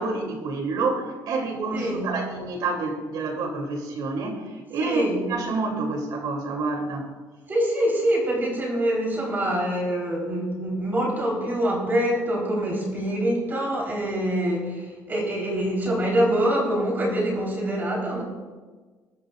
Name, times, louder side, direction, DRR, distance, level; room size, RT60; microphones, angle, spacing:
voice 1, 0.0-7.1, right 3 dB, 65° right, 2 dB, 3.0 m, -28 dB
voice 2, 1.7-2.1 4.8-5.2 7.5-18.2, right 1 dB, 25° right, -2 dB, 4.0 m, -25 dB
21.0 x 11.5 x 2.5 m, 1.3 s
cardioid pair, 145°, 8 cm